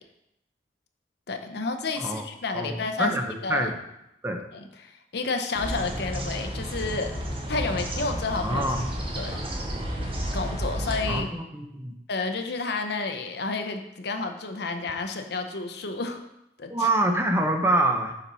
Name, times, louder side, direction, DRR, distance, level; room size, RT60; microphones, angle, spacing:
voice 1, 1.3-3.7 4.5-7.1 7.5-8.7 9.2-9.4 10.3-11.3 12.1-16.2 16.6-16.9, left 3 dB, 65° left, 6 dB, 0.8 m, -30 dB
voice 2, 2.5-3.8 4.2-4.4 8.4-8.8 11.1-12.0 16.7-18.1, right 1 dB, 15° right, 4 dB, 0.7 m, -26 dB
sound 1, 5.5-11.2, equal, 30° right, 1.3 m, -31 dB
7.5 x 4.3 x 5.4 m, 0.84 s
head